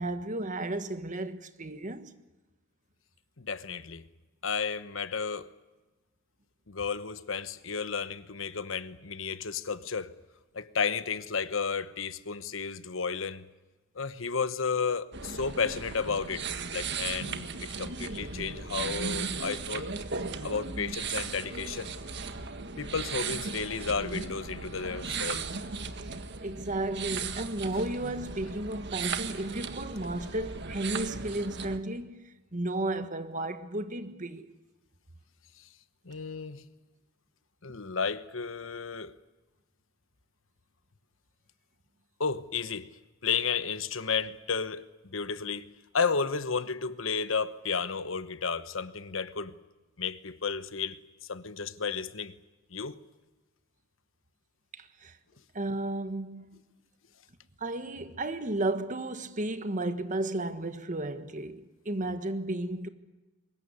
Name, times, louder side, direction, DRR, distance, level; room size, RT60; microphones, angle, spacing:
voice 1, 0.0-2.1 26.4-32.2 32.5-34.5 54.7-55.2 55.5-56.6 57.6-62.9, right 2 dB, 40° right, 1.5 m, -33 dB
voice 2, 3.4-4.0 4.4-5.5 6.7-10.1 10.5-13.5 13.9-19.9 20.4-21.9 22.8-25.5 36.0-36.6 37.6-39.1 42.2-42.9 43.2-45.7 45.9-49.5 50.0-51.0 51.3-52.3 52.7-53.0, left 5 dB, 80° left, 1.1 m, -32 dB
sound 1, 15.1-31.8, right 5 dB, 60° right, 1.6 m, -37 dB
23.5 x 21.0 x 9.7 m
head